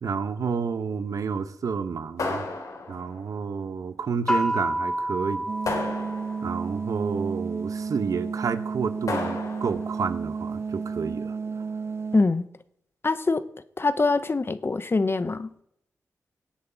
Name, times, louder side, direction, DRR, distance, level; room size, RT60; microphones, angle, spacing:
voice 1, 0.0-2.4 2.9-5.5 6.4-11.7, right 5 dB, 70° right, 0.9 m, -30 dB
sound 1, 2.2-3.3 5.6-6.6 9.1-9.9, left 3 dB, 70° left, 2.7 m, -32 dB
sound 2, 4.3-7.0, equal, 10° left, 1.4 m, -29 dB
sound 3, 5.5-12.2, right 5 dB, 45° right, 0.5 m, -32 dB
voice 2, 12.1-12.4 13.0-13.5 13.8-15.6, left 3 dB, 40° left, 0.8 m, -24 dB
18.5 x 8.4 x 4.0 m
cardioid pair, 55°, 6 cm